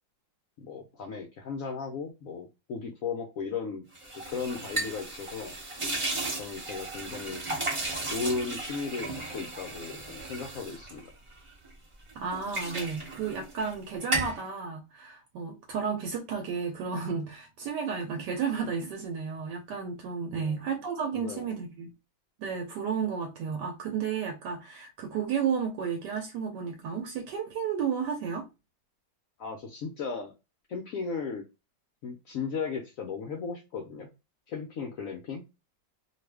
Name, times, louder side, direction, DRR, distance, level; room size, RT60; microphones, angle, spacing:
voice 1, 0.6-3.9 4.3-5.5 6.4-7.4 8.1-11.1 20.3-20.6 21.1-21.5 29.4-30.3 30.7-31.4 32.0-34.1 34.5-35.4, left 5 dB, 80° left, 0.7 m, -36 dB
sound 1, 3.9-11.7 12.1-13.8 14.0-14.4, right 2 dB, 35° right, 0.5 m, -35 dB
voice 2, 12.1-21.9 22.4-28.5, right 6 dB, 75° right, 1.2 m, -32 dB
2.7 x 2.4 x 3.3 m
omnidirectional pair, 2.0 m